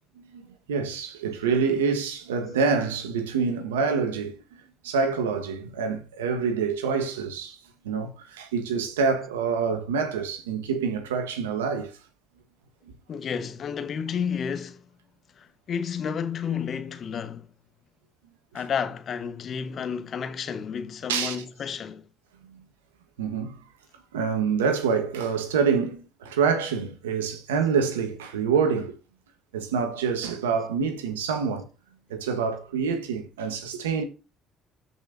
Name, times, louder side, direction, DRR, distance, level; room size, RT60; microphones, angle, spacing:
voice 1, 0.2-7.6 7.8-12.0 21.1-21.4 22.4-22.6 23.2-23.6 24.1-29.0 29.5-31.7 32.1-34.0, right 5 dB, 90° right, 1.4 m, -26 dB
voice 2, 13.1-14.8 15.4-17.5 18.5-22.0, left 7 dB, 50° left, 1.2 m, -31 dB
14.0 x 5.5 x 2.6 m
hypercardioid pair, 60°, 0 cm